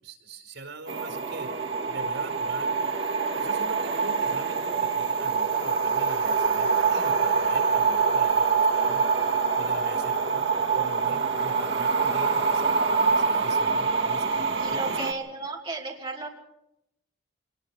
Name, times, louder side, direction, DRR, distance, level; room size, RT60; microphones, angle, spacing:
voice 1, 0.0-1.5 1.9-2.8 3.3-9.2 9.6-15.0, right 2 dB, 80° right, 6 dB, 5.1 m, -42 dB
sound 1, 0.9-15.1, right 5 dB, 60° right, 2.5 m, -25 dB
voice 2, 10.3-11.0 14.6-16.3, right 3 dB, 25° right, -1 dB, 2.9 m, -35 dB
26.5 x 21.0 x 4.8 m, 0.81 s
head